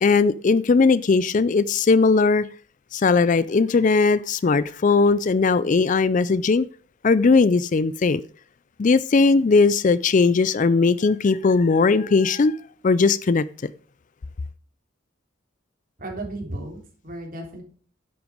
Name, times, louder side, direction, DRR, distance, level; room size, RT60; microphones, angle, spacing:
voice 1, 0.0-2.5 2.9-6.7 7.0-8.2 8.8-12.6 12.8-13.7, left 4 dB, 40° left, 0.4 m, -19 dB
voice 2, 16.0-17.6, right 1 dB, 40° right, 3.3 m, -34 dB
10.5 x 7.9 x 5.0 m
head